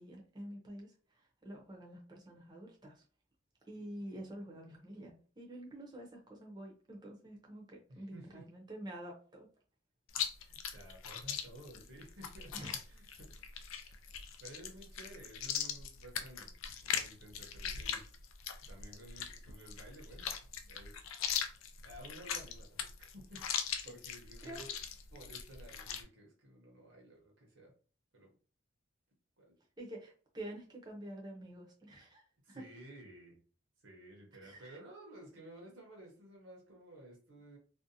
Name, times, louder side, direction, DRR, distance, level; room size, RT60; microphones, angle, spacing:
voice 1, 0.0-3.0 3.6-9.5 12.5-12.8 24.4-24.6 29.8-32.7 34.4-34.8, right 1 dB, 20° right, -1 dB, 0.6 m, -48 dB
voice 2, 7.9-8.4 10.4-13.3 13.7-14.0 14.4-16.5 16.8-18.0 18.6-20.3 20.7-21.0 21.5-24.7 25.1-27.7 28.1-28.3 29.4-29.6 32.4-33.4 33.8-37.6, right 1 dB, 75° right, 0 dB, 0.8 m, -54 dB
Chewing mastication, 10.1-26.0, left 8 dB, 85° left, 0.4 m, -40 dB
2.6 x 2.1 x 2.6 m, 0.40 s
head